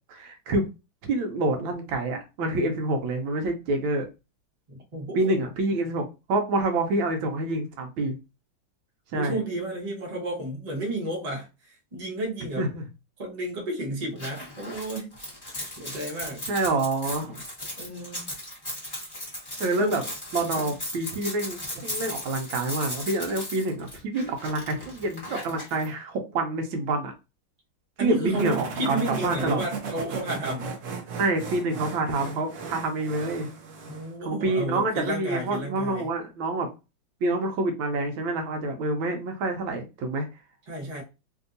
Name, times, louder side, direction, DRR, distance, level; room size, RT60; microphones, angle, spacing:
voice 1, 0.1-0.7 1.1-4.1 5.1-8.2 9.1-9.4 12.6-12.8 16.5-17.4 19.6-20.0 20.3-27.1 28.0-29.6 31.2-33.5 34.2-36.7 37.2-40.3, right 2 dB, 85° right, 1.5 m, -27 dB
voice 2, 4.7-5.4 9.1-12.7 13.2-15.2 15.8-16.4 17.8-18.3 19.8-20.0 20.5-20.7 28.0-30.7 33.9-36.1 40.7-41.0, right 1 dB, 25° right, 0.8 m, -32 dB
sound 1, 14.2-25.9, left 1 dB, 15° left, 1.3 m, -37 dB
sound 2, 28.3-34.1, right 4 dB, 60° right, 0.8 m, -36 dB
3.4 x 2.7 x 2.6 m
omnidirectional pair, 2.2 m